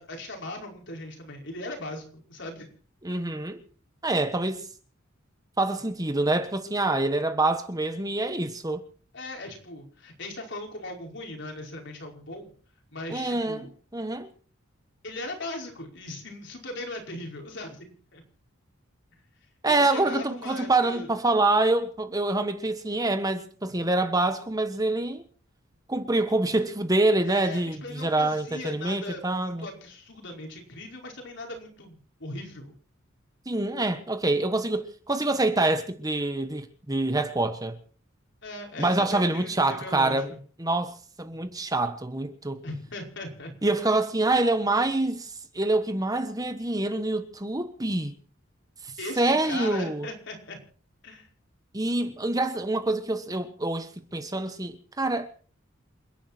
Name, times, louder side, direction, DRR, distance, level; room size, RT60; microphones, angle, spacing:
voice 1, 0.0-2.7 9.1-12.5 12.9-13.7 15.0-18.2 19.7-21.1 27.2-32.7 38.4-40.4 42.6-43.5 43.9-44.0 49.0-50.6 51.0-51.3, left 2 dB, 60° left, 5.2 m, -39 dB
voice 2, 3.0-3.6 4.0-4.6 5.6-8.8 13.1-13.7 13.9-14.3 19.6-25.2 25.9-29.7 33.5-37.8 38.8-40.3 40.6-42.6 43.6-48.1 49.2-50.1 51.7-55.3, right 2 dB, 20° right, 1.3 m, -26 dB
28.5 x 10.5 x 4.4 m
head